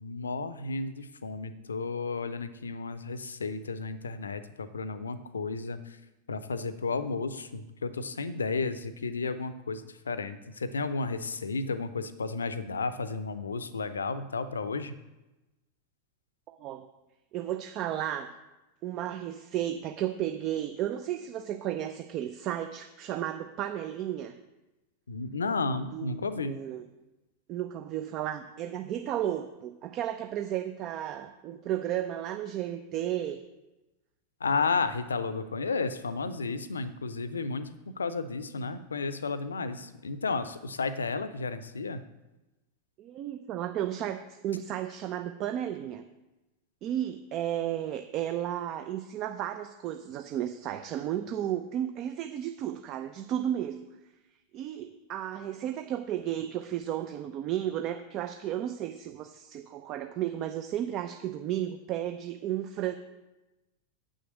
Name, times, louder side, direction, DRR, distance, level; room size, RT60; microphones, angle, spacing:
voice 1, 0.0-6.0 6.3-15.0 25.1-26.6 34.4-42.0, left 4 dB, 70° left, 13 dB, 0.6 m, -33 dB
voice 2, 16.5-16.9 17.3-18.3 18.8-24.4 25.9-26.8 27.5-33.4 43.0-46.0 46.8-53.8 54.5-62.9, right 11 dB, 35° right, 7 dB, 0.6 m, -33 dB
7.8 x 6.4 x 7.6 m, 1.0 s
figure-of-eight pair, 90°, 0 cm